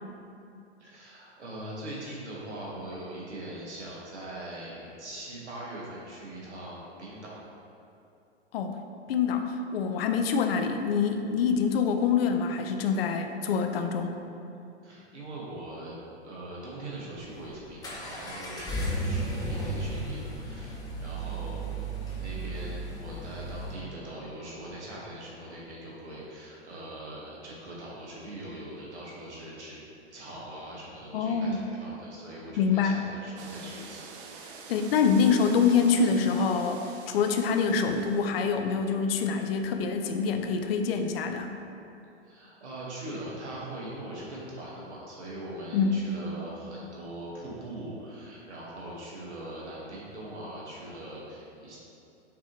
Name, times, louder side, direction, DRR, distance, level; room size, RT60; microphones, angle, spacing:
voice 1, 0.8-7.3 14.8-15.9 16.2-21.8 22.1-29.8 30.1-34.0 42.2-51.8, right 1 dB, 80° right, -5 dB, 1.4 m, -41 dB
voice 2, 9.1-14.1 31.1-31.7 32.6-33.0 34.7-41.6 45.7-46.0, left 5 dB, 60° left, 6 dB, 0.5 m, -25 dB
Accelerating revving vroom, 17.2-23.8, right 1 dB, 10° left, 0.8 m, -34 dB
sound 1, 33.3-38.6, right 5 dB, 50° right, 0.6 m, -47 dB
6.0 x 2.9 x 3.0 m, 2.7 s
hypercardioid pair, 105°, 34 cm